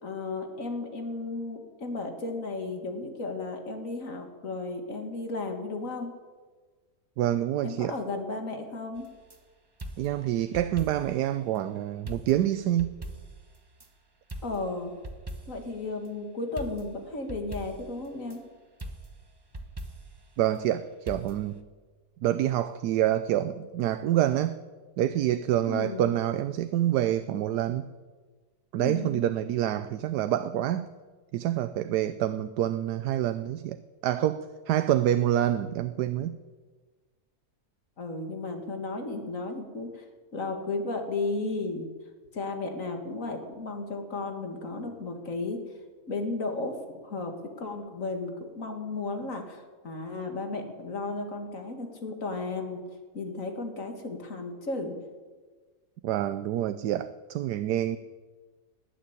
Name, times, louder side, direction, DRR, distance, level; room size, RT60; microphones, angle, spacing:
voice 1, 0.0-6.1 7.6-9.1 14.4-14.9 15.5-18.4 25.6-26.1 28.8-29.3 38.0-40.0 40.3-41.9 42.3-45.6 46.1-52.8 53.1-54.9, left 3 dB, 55° left, 2.3 m, -34 dB
voice 2, 7.2-7.9 10.0-12.9 20.4-21.6 22.2-24.6 25.0-27.9 28.7-30.9 31.3-36.3 56.0-58.0, right 12 dB, 85° right, 1.2 m, -27 dB
sound 1, 9.0-9.4 9.8-11.3 11.6-11.7 12.1-13.9 14.3-15.8 16.6-18.4 18.8-20.3 21.1-21.6, right 1 dB, 20° right, 0.8 m, -42 dB
19.0 x 7.4 x 10.0 m
omnidirectional pair, 1.7 m